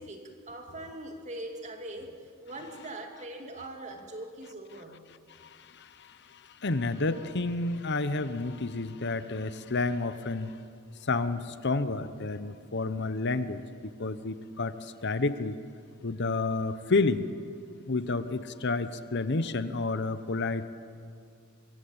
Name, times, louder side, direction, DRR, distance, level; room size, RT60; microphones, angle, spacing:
voice 1, 0.0-5.1, right 1 dB, 30° right, 3 dB, 2.5 m, -42 dB
voice 2, 5.3-10.6 11.0-15.6 16.0-17.3 17.9-20.6, left 3 dB, 50° left, 12 dB, 0.9 m, -30 dB
25.0 x 21.5 x 8.8 m, 2.4 s
head